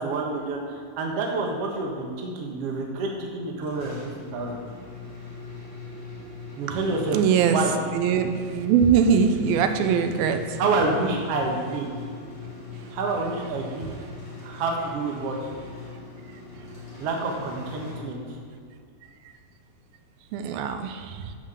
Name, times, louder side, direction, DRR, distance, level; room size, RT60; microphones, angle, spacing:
voice 1, 0.0-4.6 6.6-7.2 7.5-7.7 10.6-11.9 12.9-13.9 14.4-15.3 17.0-18.2, right 3 dB, 55° right, 0 dB, 1.9 m, -28 dB
sound 1, 3.6-18.6, left 5 dB, 60° left, 4.5 m, -40 dB
voice 2, 7.1-7.6 7.9-10.6 20.3-21.3, right 7 dB, 90° right, 7 dB, 2.5 m, -22 dB
10.5 x 5.9 x 6.8 m, 2.1 s
omnidirectional pair, 4.1 m